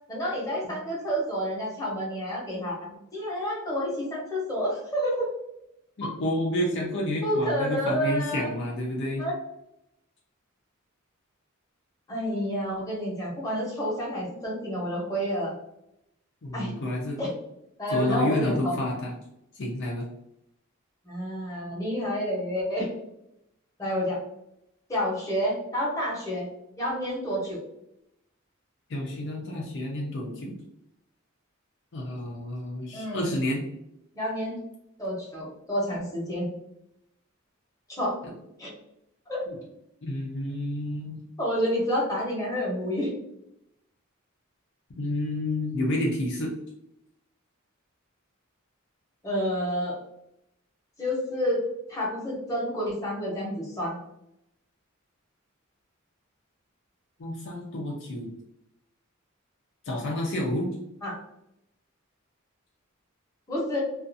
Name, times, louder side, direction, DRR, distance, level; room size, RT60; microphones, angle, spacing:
voice 1, 0.1-5.3 6.0-6.1 7.2-8.5 9.2-9.3 12.1-15.5 16.5-16.7 17.2-17.3 17.8-18.7 21.0-22.9 23.8-24.2 24.9-26.5 26.8-27.6 32.9-33.3 34.1-34.6 35.0-36.5 37.9-38.2 38.6-38.7 39.3-39.5 41.4-43.1 49.2-50.0 51.0-54.0 61.0-61.2 63.5-63.8, equal, 15° left, -5 dB, 0.9 m, -29 dB
voice 2, 6.0-9.2 16.4-17.2 17.9-19.1 19.5-20.0 28.9-30.6 31.9-33.6 38.2-38.3 39.5-39.6 40.0-41.2 45.0-46.5 57.2-58.3 59.9-60.7, left 1 dB, 60° left, -1 dB, 0.5 m, -29 dB
2.4 x 2.4 x 2.6 m, 0.82 s
head